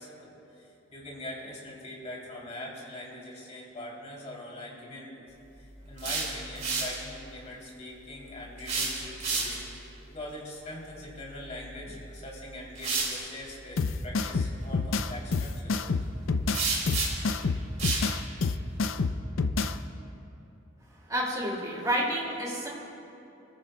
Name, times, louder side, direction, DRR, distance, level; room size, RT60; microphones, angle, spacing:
voice 1, 0.0-5.2 5.6-9.6 10.1-15.8, left 1 dB, 35° left, -3 dB, 3.0 m, -42 dB
sound 1, 5.8-7.0 8.6-9.8 11.8-12.0 12.7-13.2 16.5-17.3 17.8-18.1, right 4 dB, 40° right, 3.3 m, -30 dB
sound 2, 13.8-19.8, left 4 dB, 85° left, 0.5 m, -28 dB
voice 2, 21.1-22.7, equal, 20° right, -3 dB, 2.3 m, -29 dB
27.5 x 15.0 x 2.2 m, 2.8 s
head